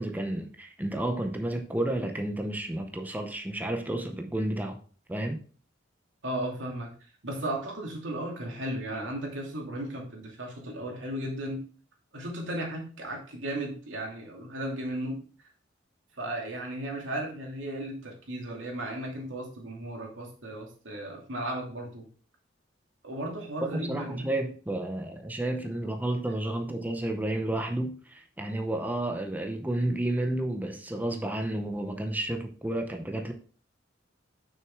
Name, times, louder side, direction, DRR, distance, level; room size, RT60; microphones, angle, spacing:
voice 1, 0.0-4.8 5.1-5.4 23.6-33.3, right 1 dB, 10° right, 3 dB, 0.6 m, -31 dB
voice 2, 6.2-6.9 7.2-11.7 12.1-15.2 16.2-22.1 23.0-24.3, right 1 dB, 80° right, -1 dB, 2.5 m, -35 dB
6.3 x 6.2 x 3.5 m, 0.40 s
head